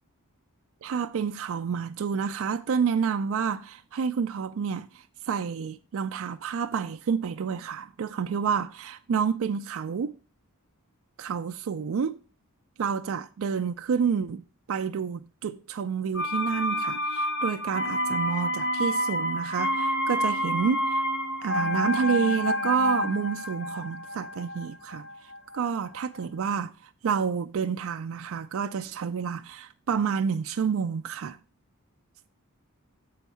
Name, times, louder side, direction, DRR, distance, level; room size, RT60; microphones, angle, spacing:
voice 1, 0.8-10.1 11.2-12.2 12.8-21.0 21.4-26.7 27.0-31.4, right 6 dB, 65° right, 0.4 m, -29 dB
sound 1, 16.1-25.9 26.2-26.3, equal, 65° left, 0.7 m, -29 dB
7.1 x 4.6 x 5.4 m
head